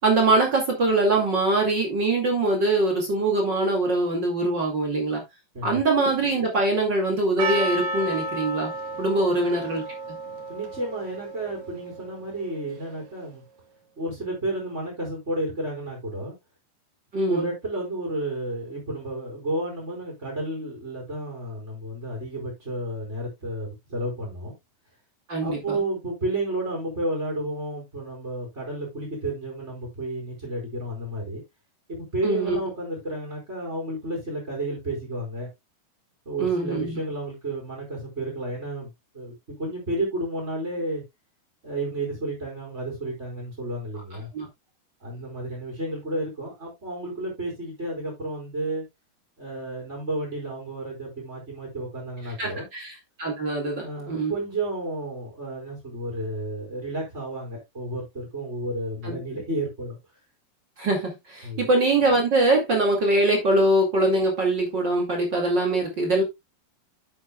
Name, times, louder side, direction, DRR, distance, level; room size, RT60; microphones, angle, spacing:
voice 1, 0.0-5.2 5.6-8.7 9.0-9.8 17.1-17.5 25.3-25.8 32.2-32.6 36.4-37.0 44.3-44.5 52.4-52.9 53.2-54.3 59.0-59.2 60.8-66.2, right 2 dB, 35° right, 2.4 m, -23 dB
Percussion, 7.4-12.4, right 1 dB, 55° right, 2.3 m, -32 dB
voice 2, 10.5-13.4 14.0-16.3 17.3-24.5 25.4-31.4 31.9-35.5 36.2-41.0 41.6-44.3 45.0-48.8 49.4-52.7 53.8-60.0 61.4-61.7, right 1 dB, 15° right, 4.3 m, -31 dB
9.4 x 8.7 x 2.3 m
omnidirectional pair, 4.3 m